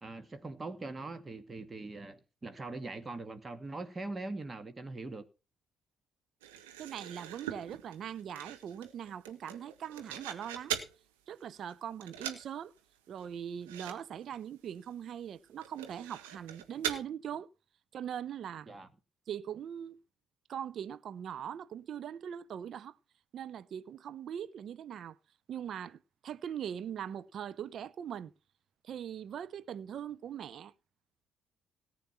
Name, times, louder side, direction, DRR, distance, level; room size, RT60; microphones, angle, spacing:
voice 1, 0.0-5.3 18.7-18.9, right 2 dB, 25° right, 1.8 m, -42 dB
sound 1, 6.4-11.0 11.4-11.7 12.0-12.5 12.8-12.9 13.2-13.3 13.6-14.0 14.2-14.4 14.8-14.9 15.6-17.0, right 10 dB, 75° right, 1.5 m, -41 dB
voice 2, 6.8-10.8 11.3-12.7 13.1-17.5 17.9-18.7 19.3-20.0 20.5-23.0 23.3-25.2 25.5-28.3 28.8-30.7, right 9 dB, 50° right, 0.7 m, -41 dB
18.0 x 8.7 x 4.3 m
figure-of-eight pair, 45°, 0 cm